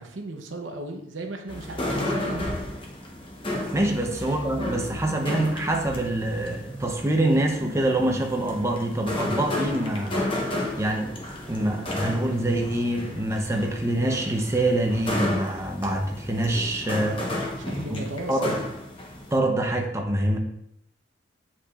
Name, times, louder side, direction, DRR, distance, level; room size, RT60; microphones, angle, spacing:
voice 1, 0.0-2.5 3.8-3.9 17.5-18.5, right 2 dB, 90° right, 3 dB, 0.8 m, -36 dB
sound 1, 1.5-19.4, left 1 dB, 30° left, 1.0 m, -33 dB
voice 2, 3.7-10.2 10.8-11.1 11.5-17.5 17.9-18.6 19.3-20.4, right 1 dB, 15° right, 2 dB, 0.8 m, -25 dB
8.5 x 5.2 x 2.4 m, 0.76 s
head